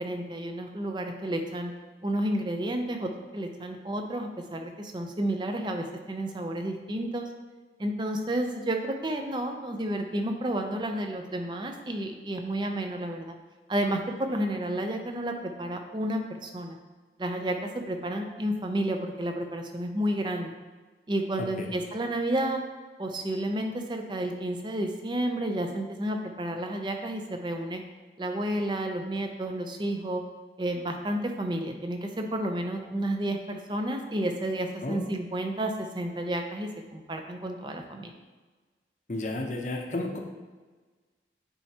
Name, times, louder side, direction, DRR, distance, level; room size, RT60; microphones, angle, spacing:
voice 1, 0.0-1.7 2.0-7.3 7.8-13.3 13.7-16.8 17.2-20.5 21.1-22.6 23.0-27.8 28.2-30.2 30.6-38.1, right 1 dB, 25° right, 4 dB, 0.5 m, -31 dB
voice 2, 39.1-40.2, left 2 dB, 45° left, 2 dB, 0.7 m, -32 dB
9.0 x 4.3 x 2.9 m, 1.3 s
head